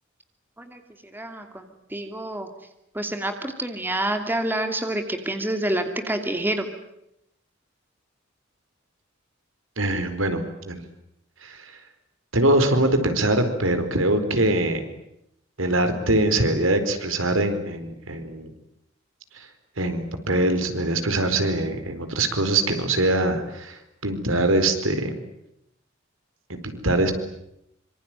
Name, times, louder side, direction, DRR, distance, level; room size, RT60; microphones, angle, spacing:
voice 1, 1.1-2.5 2.9-6.7, right 1 dB, 10° right, 6 dB, 2.7 m, -28 dB
voice 2, 9.8-10.8 11.4-11.7 12.3-14.8 15.6-18.5 19.3-19.5 19.8-25.1 26.5-27.1, right 1 dB, 80° right, 8 dB, 4.5 m, -23 dB
25.5 x 25.5 x 9.1 m, 0.81 s
head